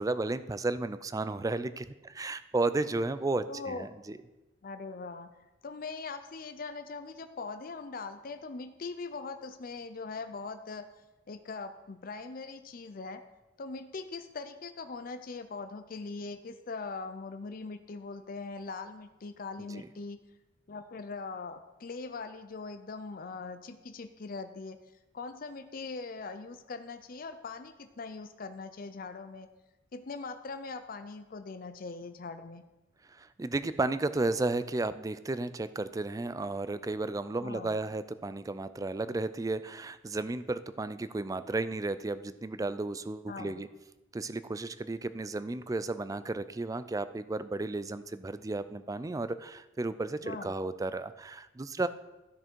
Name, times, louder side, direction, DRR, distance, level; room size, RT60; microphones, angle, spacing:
voice 1, 0.0-4.2 19.7-19.9 33.1-43.7 44.1-51.9, right 2 dB, 20° right, 13 dB, 0.3 m, -33 dB
voice 2, 3.5-3.9 4.6-5.3 5.6-10.9 11.3-13.2 13.6-20.2 20.7-24.8 25.1-29.5 29.9-32.6 37.4-37.8 43.3-43.6 50.2-50.5, left 4 dB, 45° left, 9 dB, 0.5 m, -41 dB
12.5 x 6.3 x 4.5 m, 1.0 s
head